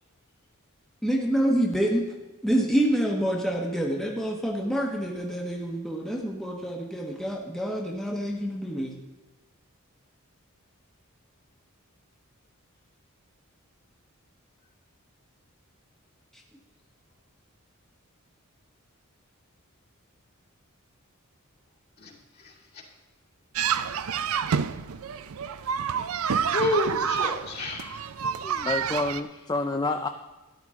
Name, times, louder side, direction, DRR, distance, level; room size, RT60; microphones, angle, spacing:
voice 1, 1.0-2.0 2.4-8.9, right 1 dB, ahead, -1 dB, 1.1 m, -27 dB
voice 2, 22.0-22.9 26.5-28.1, left 1 dB, 45° left, -2 dB, 2.5 m, -30 dB
sound 1, 23.6-29.2, right 7 dB, 75° right, 0.5 m, -28 dB
voice 3, 28.2-30.1, left 2 dB, 20° left, 6 dB, 0.4 m, -29 dB
13.0 x 11.0 x 3.7 m, 1.1 s
head